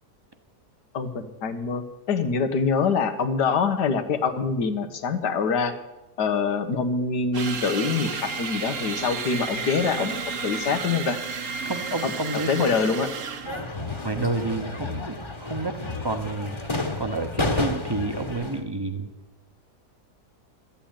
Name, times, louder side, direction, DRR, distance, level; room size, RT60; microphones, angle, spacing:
voice 1, 0.9-5.8 6.2-11.2 12.0-12.1 12.5-13.1, left 5 dB, 90° left, 8 dB, 1.7 m, -25 dB
sound 1, 7.3-13.6, right 5 dB, 55° right, 1.3 m, -32 dB
voice 2, 11.6-12.9 14.0-19.1, right 2 dB, 20° right, 6 dB, 0.9 m, -30 dB
sound 2, 13.4-18.6, left 2 dB, 20° left, 1.2 m, -31 dB
13.0 x 8.8 x 8.8 m, 1.0 s
omnidirectional pair, 1.7 m